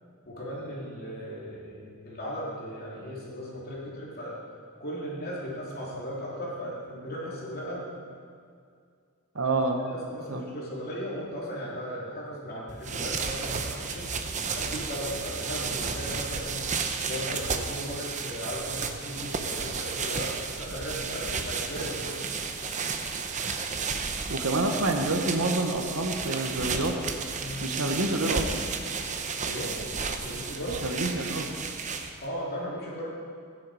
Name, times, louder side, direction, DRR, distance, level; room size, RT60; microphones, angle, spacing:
voice 1, 0.2-4.4 4.8-7.9 9.3-9.6 9.9-14.1 14.5-16.7 17.0-22.2 27.4-27.7 29.3-29.7 30.2-30.8 32.2-33.1, equal, 45° left, -6 dB, 3.1 m, -37 dB
voice 2, 9.3-9.8 10.3-10.4 24.3-27.0 27.6-28.5 30.8-31.5, right 2 dB, 75° right, 4 dB, 1.4 m, -27 dB
sound 1, 12.7-32.3, right 5 dB, 35° right, 0.8 m, -33 dB
16.0 x 10.5 x 4.9 m, 2.2 s
head